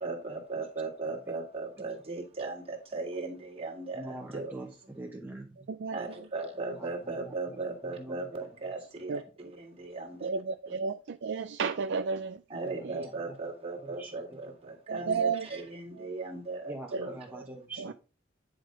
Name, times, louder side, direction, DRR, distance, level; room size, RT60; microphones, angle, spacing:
voice 1, 0.0-4.6 5.9-10.3 10.7-10.8 12.5-17.3, right 3 dB, 30° right, 1.9 m, -37 dB
voice 2, 3.9-4.7 4.9-5.6 6.8-6.9 7.2-7.6 8.0-8.2 13.0-13.1 13.8-14.1 16.7-17.9, right 2 dB, 10° right, 1.1 m, -43 dB
voice 3, 10.2-12.4 14.9-15.5 16.9-17.0 17.8-17.9, right 5 dB, 60° right, 0.4 m, -32 dB
9.8 x 5.1 x 3.8 m
head